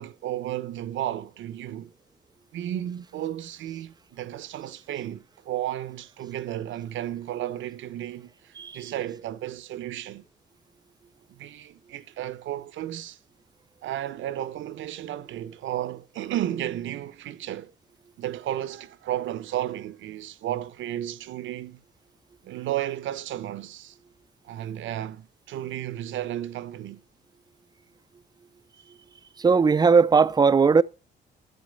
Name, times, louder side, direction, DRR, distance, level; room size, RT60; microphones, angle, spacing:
voice 1, 0.0-1.9 2.5-10.2 11.3-13.2 13.8-17.7 18.2-21.8 22.4-24.0 24.4-27.0, right 12 dB, 75° right, 0.8 m, -33 dB
voice 2, 29.4-30.8, right 5 dB, 20° right, 0.4 m, -18 dB
12.0 x 7.7 x 5.1 m
cardioid pair, 90°, 20 cm